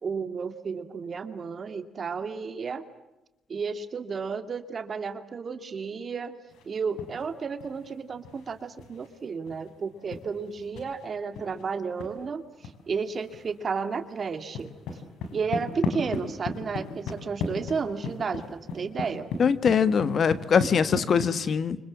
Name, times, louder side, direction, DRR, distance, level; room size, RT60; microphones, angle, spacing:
voice 1, 0.0-2.8 3.5-6.4 6.6-12.4 12.9-14.7 15.3-19.3, right 5 dB, 45° right, 9 dB, 2.4 m, -32 dB
sound 1, 6.5-7.3 7.6-12.1 12.6-12.7 13.0-13.6 13.8-21.3, left 3 dB, 85° left, 5.4 m, -36 dB
voice 2, 19.4-21.8, left 6 dB, 50° left, 14 dB, 1.5 m, -22 dB
29.5 x 25.5 x 7.4 m, 0.95 s
cardioid pair, 90°, 0 cm